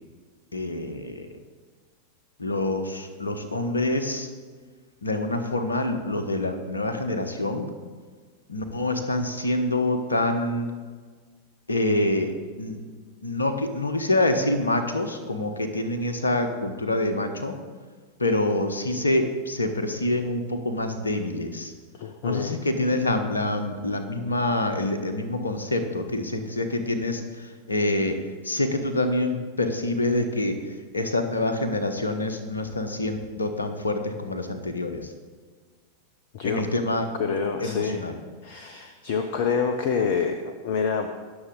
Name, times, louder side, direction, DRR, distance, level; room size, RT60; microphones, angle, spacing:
voice 1, 0.5-1.3 2.4-4.3 5.0-7.7 8.5-10.7 11.7-12.8 13.2-17.5 18.2-21.7 22.2-28.2 28.4-35.1 36.4-37.1 37.6-38.2, left 2 dB, 75° left, 8 dB, 1.2 m, -26 dB
voice 2, 22.0-22.5 36.3-36.6 37.2-38.0 38.4-41.1, left 6 dB, 50° left, 7 dB, 0.9 m, -27 dB
21.0 x 7.1 x 3.9 m, 1.5 s
figure-of-eight pair, 90°, 0 cm